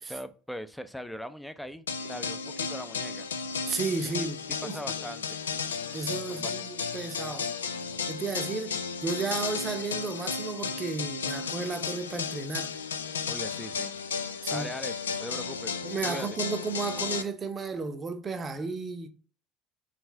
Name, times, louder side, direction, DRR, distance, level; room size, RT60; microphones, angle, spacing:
voice 1, 0.0-3.3 4.2-4.3 4.6-5.4 6.3-6.5 8.7-8.8 13.3-13.9 14.5-15.8 16.1-16.3, equal, ahead, 0.6 m, -40 dB
sound 1, 1.9-17.2, left 5 dB, 75° left, 0.5 m, -34 dB
voice 2, 3.7-4.8 5.9-7.5 8.1-12.8 14.4-14.7 15.8-19.1, right 4 dB, 25° right, 0.9 m, -33 dB
4.2 x 4.1 x 5.5 m
figure-of-eight pair, 65°, 0 cm